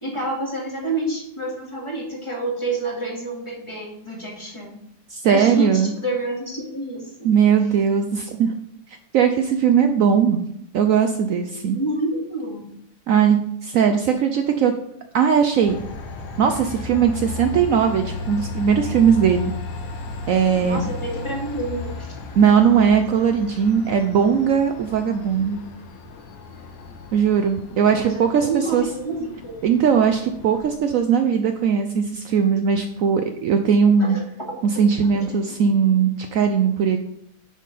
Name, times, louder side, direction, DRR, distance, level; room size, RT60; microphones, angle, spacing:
voice 1, 0.0-4.7 5.2-7.1 11.7-12.6 20.5-21.9 27.7-29.5 34.0-34.1 34.4-34.5 35.2-35.6, right 2 dB, 15° left, -3 dB, 2.2 m, -28 dB
voice 2, 5.1-5.9 7.2-8.5 9.1-10.4 10.7-11.8 13.1-14.7 15.1-15.8 16.4-19.5 20.3-20.9 22.4-25.6 27.1-28.8 29.6-34.2 34.6-37.0, right 7 dB, 80° right, 6 dB, 0.7 m, -19 dB
Train, 15.6-30.8, left 3 dB, 75° left, 1.7 m, -35 dB
10.0 x 4.4 x 4.9 m, 0.73 s
omnidirectional pair, 2.1 m